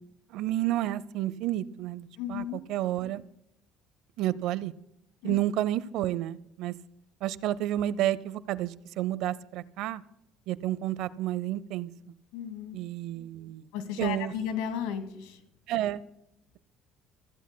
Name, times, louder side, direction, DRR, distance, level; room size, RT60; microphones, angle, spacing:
voice 1, 0.3-3.2 4.2-4.7 5.2-6.7 7.2-10.0 10.5-11.9 12.7-13.6 14.0-14.3 15.7-16.0, right 13 dB, 75° right, 18 dB, 0.6 m, -30 dB
voice 2, 2.2-2.6 5.2-5.4 12.3-12.8 13.7-15.4, left 8 dB, 90° left, 8 dB, 2.1 m, -34 dB
29.0 x 15.0 x 2.2 m, 0.80 s
supercardioid pair, 100°, 0 cm